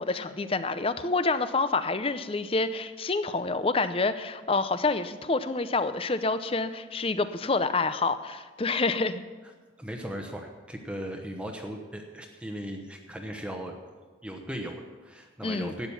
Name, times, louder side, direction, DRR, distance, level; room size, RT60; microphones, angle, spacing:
voice 1, 0.0-9.2 15.4-15.8, left 3 dB, 30° left, 12 dB, 0.5 m, -28 dB
voice 2, 9.8-13.7 14.2-15.9, equal, 5° right, 3 dB, 1.0 m, -37 dB
12.5 x 9.1 x 7.1 m, 1.4 s
head